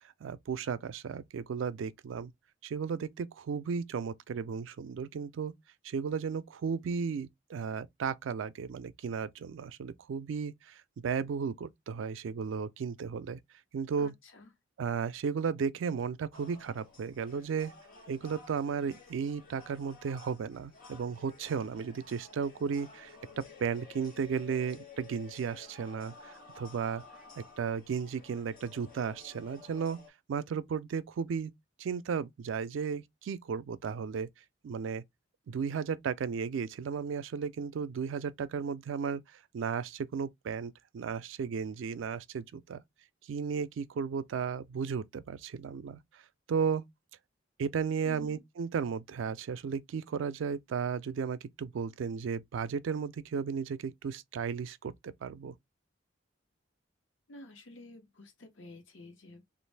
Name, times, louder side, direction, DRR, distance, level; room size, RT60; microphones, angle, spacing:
voice 1, 0.2-2.3 2.6-5.5 5.8-13.4 13.7-14.1 14.8-17.7 18.1-27.0 27.4-30.0 30.3-31.5 31.8-34.3 34.6-35.0 35.5-42.8 43.3-46.2 46.5-46.8 47.6-55.6, right 6 dB, 85° right, 0.4 m, -34 dB
voice 2, 14.0-14.5 48.0-48.4 57.3-59.5, left 2 dB, 85° left, 1.1 m, -51 dB
sound 1, 16.3-30.1, left 4 dB, 45° left, 1.5 m, -53 dB
3.2 x 2.4 x 3.2 m
head